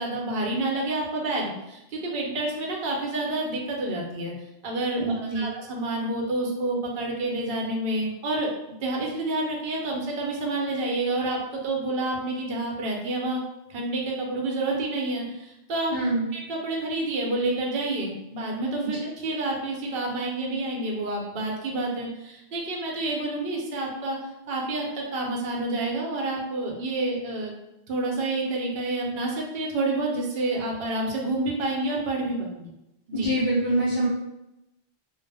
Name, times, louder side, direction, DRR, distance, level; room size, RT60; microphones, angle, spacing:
voice 1, 0.0-4.3 4.6-8.5 8.8-13.4 13.7-16.0 16.3-24.2 24.5-27.5 27.9-32.7 33.1-33.3, right 2 dB, 65° right, -1 dB, 0.8 m, -29 dB
voice 2, 5.0-5.5 15.9-16.2 18.9-19.0 33.1-34.1, right 1 dB, 50° left, -10 dB, 0.8 m, -25 dB
2.3 x 2.0 x 3.2 m, 0.91 s
omnidirectional pair, 1.0 m